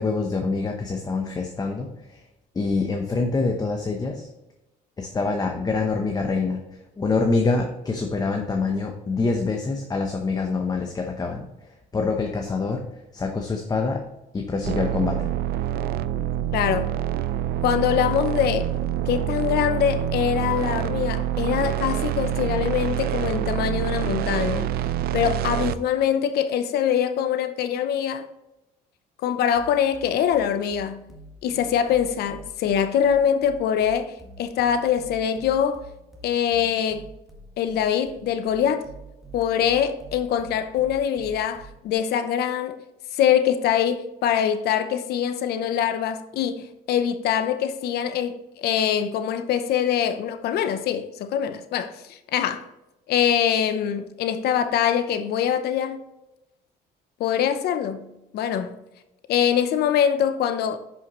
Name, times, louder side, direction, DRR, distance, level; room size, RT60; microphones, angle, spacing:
voice 1, 0.0-2.2 2.5-4.3 5.0-6.6 7.0-11.5 11.9-12.9 13.1-14.0 14.3-15.3, left 4 dB, 20° left, 0.9 m, -25 dB
sound 1, 14.6-25.7, right 11 dB, 65° right, 0.5 m, -26 dB
voice 2, 16.5-16.9 17.6-18.7 19.1-24.7 25.1-28.3 29.2-31.1 31.4-35.8 36.2-37.1 37.6-38.9 39.3-42.8 43.1-52.7 53.1-56.0 57.2-58.8 59.3-60.8, left 9 dB, 70° left, 0.8 m, -23 dB
sound 2, 29.6-41.9, right 3 dB, ahead, 1.7 m, -45 dB
11.0 x 5.7 x 3.1 m
cardioid pair, 110°, 17 cm